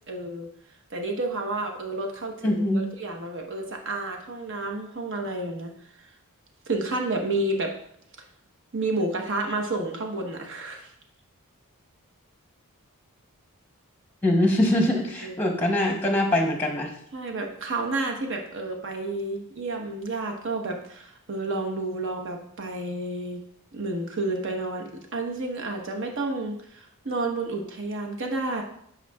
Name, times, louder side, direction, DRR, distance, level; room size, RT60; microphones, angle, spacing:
voice 1, 0.1-0.5 0.9-6.0 6.7-7.7 8.7-10.9 15.2-15.3 17.1-23.4 23.7-28.6, right 2 dB, 55° right, 2 dB, 1.0 m, -30 dB
voice 2, 2.4-2.8 14.2-16.9, left 1 dB, 10° left, 2 dB, 0.8 m, -23 dB
9.1 x 5.2 x 2.3 m, 0.69 s
head